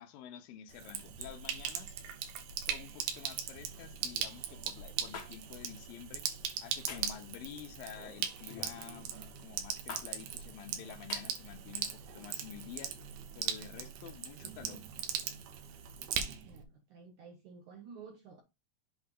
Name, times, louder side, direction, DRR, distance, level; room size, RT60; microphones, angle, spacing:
voice 1, 0.0-2.0 2.6-6.2 6.6-9.1 9.4-11.9 12.1-12.9 13.4-14.8, left 10 dB, 80° left, 2.5 m, -49 dB
Sink (filling or washing), 0.7-16.6, right 8 dB, 85° right, 2.8 m, -40 dB
sound 1, 5.1-5.3 6.9-7.2 8.5-8.8 9.9-10.1 11.1-11.3, left 6 dB, 55° left, 1.7 m, -43 dB
voice 2, 16.4-18.4, right 5 dB, 70° right, 2.1 m, -52 dB
7.9 x 3.1 x 5.2 m
omnidirectional pair, 4.2 m